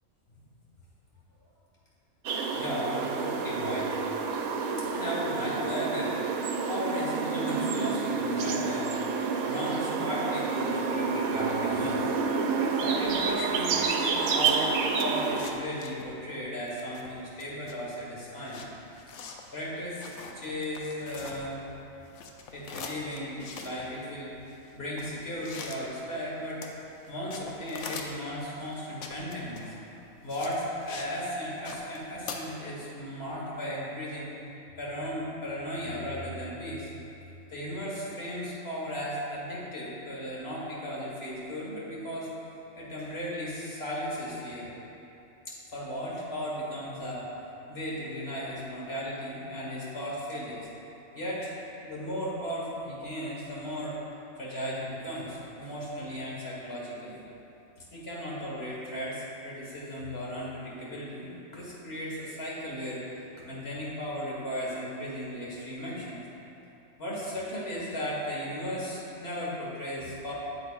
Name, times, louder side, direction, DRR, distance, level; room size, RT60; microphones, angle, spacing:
sound 1, 2.3-15.6, right 5 dB, 85° right, 1.1 m, -29 dB
voice 1, 2.5-4.0 4.9-6.4 6.7-8.9 9.4-12.1 12.8-18.6 19.5-21.6 22.5-24.3 24.7-26.6 27.1-29.7 30.2-34.3 34.8-36.9 37.5-42.3 42.8-44.7 45.5-47.3 47.7-50.7 51.2-51.5 51.8-54.0 54.4-57.1 57.9-63.0 63.5-66.2 67.0-70.3, equal, 45° left, -6 dB, 1.8 m, -36 dB
sound 2, 13.0-16.3 16.6-21.8 22.0-31.1 31.4-32.4, left 5 dB, 65° left, 0.9 m, -44 dB
8.6 x 7.9 x 2.5 m, 2.9 s
omnidirectional pair, 1.5 m